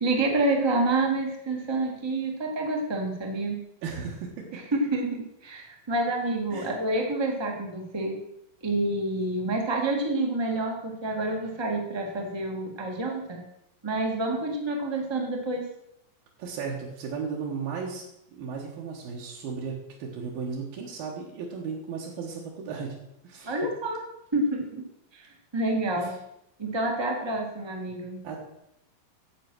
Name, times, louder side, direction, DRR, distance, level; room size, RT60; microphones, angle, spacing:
voice 1, 0.0-3.6 4.8-8.2 8.6-13.4 13.8-15.6 23.4-24.0 24.3-24.9 25.1-26.1 26.6-28.2, right 2 dB, 45° right, 1 dB, 0.3 m, -28 dB
voice 2, 3.8-4.6 6.5-6.7 16.4-18.0 18.3-23.0 23.2-23.6 26.0-26.1 28.2-28.4, right 5 dB, 80° right, -3 dB, 3.4 m, -35 dB
11.5 x 7.7 x 6.1 m, 0.81 s
omnidirectional pair, 4.1 m